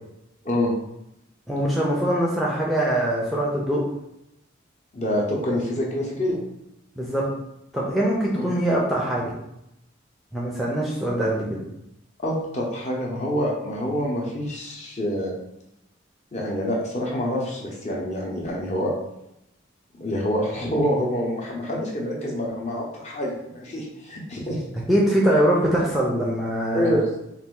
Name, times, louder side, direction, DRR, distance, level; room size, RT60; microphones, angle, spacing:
voice 1, 1.5-3.8 7.0-7.3 7.7-9.3 10.3-11.6 24.9-26.9, right 1 dB, ahead, -4 dB, 0.5 m, -23 dB
voice 2, 4.9-6.4 8.3-8.5 12.2-15.3 16.3-18.9 20.0-24.6 26.7-27.1, equal, 35° left, -2 dB, 0.8 m, -26 dB
4.0 x 2.5 x 3.7 m, 0.84 s
head